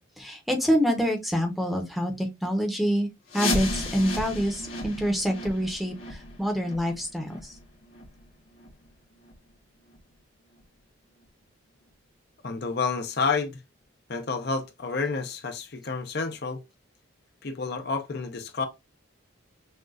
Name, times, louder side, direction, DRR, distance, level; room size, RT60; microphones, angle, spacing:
voice 1, 0.2-3.1 3.3-7.5, equal, ahead, 0.7 m, -26 dB
sound 1, 3.3-8.9 9.2-9.3 9.9-10.0 10.6-10.7 11.2-11.3, left 2 dB, 75° left, 1.6 m, -34 dB
voice 2, 12.4-13.6 14.1-16.6 17.4-18.7, left 4 dB, 50° left, 0.6 m, -29 dB
6.3 x 2.4 x 2.4 m
head